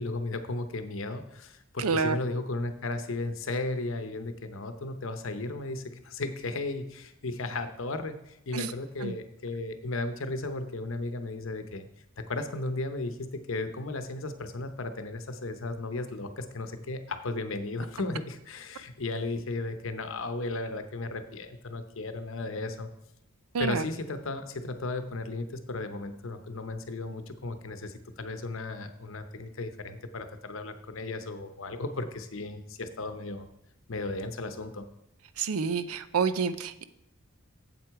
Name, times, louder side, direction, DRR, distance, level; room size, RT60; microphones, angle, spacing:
voice 1, 0.0-11.9 12.2-22.9 23.6-33.5 33.9-34.9, left 2 dB, 65° left, 9 dB, 0.8 m, -35 dB
voice 2, 1.8-2.2 8.5-8.7 9.0-9.2 23.5-23.8 35.4-36.8, right 5 dB, 90° right, 13 dB, 0.6 m, -28 dB
7.9 x 7.7 x 4.7 m, 0.84 s
head